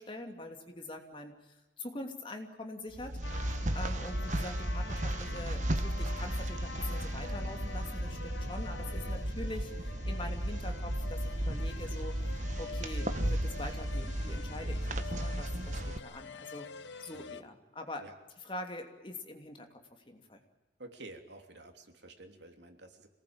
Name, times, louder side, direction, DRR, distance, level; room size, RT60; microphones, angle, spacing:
voice 1, 0.0-3.1 3.7-9.7 10.0-12.2 12.6-16.7 17.0-18.0 18.4-19.8 20.0-20.4, left 1 dB, 30° left, 4 dB, 2.9 m, -44 dB
sound 1, 2.9-16.0, right 1 dB, 40° right, 1.2 m, -34 dB
sound 2, 3.2-17.4, left 5 dB, 80° left, 1.1 m, -47 dB
voice 2, 20.8-23.1, right 2 dB, 75° right, 5 dB, 3.1 m, -50 dB
26.5 x 19.5 x 8.9 m, 1.1 s
head